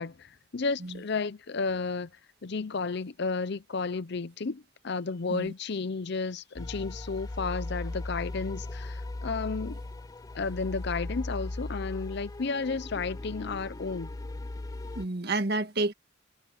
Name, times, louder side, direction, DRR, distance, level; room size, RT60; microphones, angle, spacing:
voice 1, 0.0-2.1 2.4-9.8 10.3-14.1, left 4 dB, 60° left, 0.6 m, -32 dB
sound 1, 6.6-15.1, left 2 dB, 20° left, 0.4 m, -38 dB
voice 2, 14.9-15.9, right 2 dB, 55° right, 1.6 m, -29 dB
head